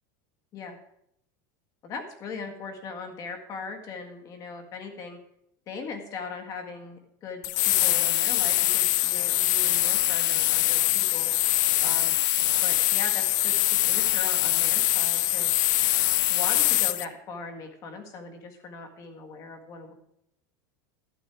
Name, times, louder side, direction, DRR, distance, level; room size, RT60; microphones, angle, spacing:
voice 1, 1.8-5.2 5.7-11.3 11.8-12.2 12.6-15.5 16.3-19.9, left 4 dB, 35° left, 5 dB, 1.7 m, -39 dB
sound 1, 7.4-17.0, left 16 dB, 65° left, 0.5 m, -23 dB
12.0 x 8.3 x 4.5 m, 0.76 s
supercardioid pair, 155°, 10 cm